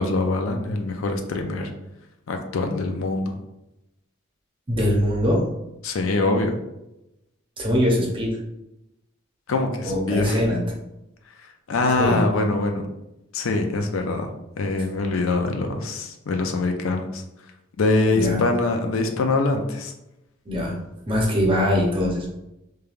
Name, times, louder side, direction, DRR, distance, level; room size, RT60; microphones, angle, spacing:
voice 1, 0.0-1.7 2.3-3.4 5.8-6.5 9.5-10.4 11.7-12.8 13.3-14.3 14.6-17.2 17.8-19.9, left 2 dB, 75° left, 4 dB, 0.4 m, -23 dB
voice 2, 4.7-5.4 7.6-8.3 9.8-10.6 12.0-12.2 18.0-18.5 20.5-20.8 21.1-22.3, equal, 25° right, -1 dB, 0.6 m, -22 dB
3.2 x 2.3 x 2.4 m, 0.90 s
head